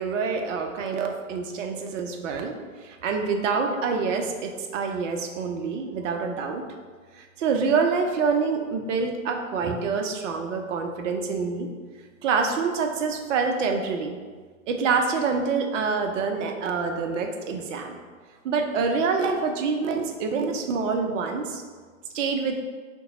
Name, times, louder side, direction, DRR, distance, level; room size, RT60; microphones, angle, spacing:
voice 1, 0.0-2.5 2.8-6.6 7.2-11.7 12.2-14.2 14.7-18.0 18.4-21.6 22.1-22.6, right 5 dB, 60° right, 4 dB, 0.6 m, -26 dB
2.8 x 2.2 x 3.8 m, 1.5 s
hypercardioid pair, 110°, 42 cm